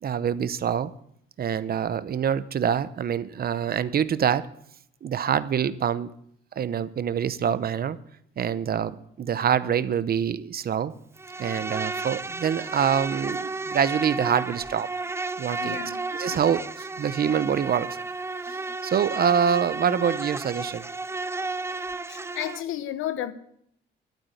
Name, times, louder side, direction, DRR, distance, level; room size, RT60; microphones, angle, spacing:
voice 1, 0.0-0.9 1.4-4.5 5.0-6.1 6.6-8.0 8.4-10.9 11.4-14.9 15.4-15.8 16.2-17.9 18.5-20.9, right 8 dB, 50° right, 15 dB, 0.8 m, -25 dB
Insect, 11.2-22.6, right 3 dB, 15° right, 0.4 m, -33 dB
voice 2, 15.6-16.0 16.3-16.4 22.1-23.3, left 11 dB, 90° left, 12 dB, 1.1 m, -32 dB
12.0 x 8.9 x 7.9 m, 0.70 s
cardioid pair, 90°, 20 cm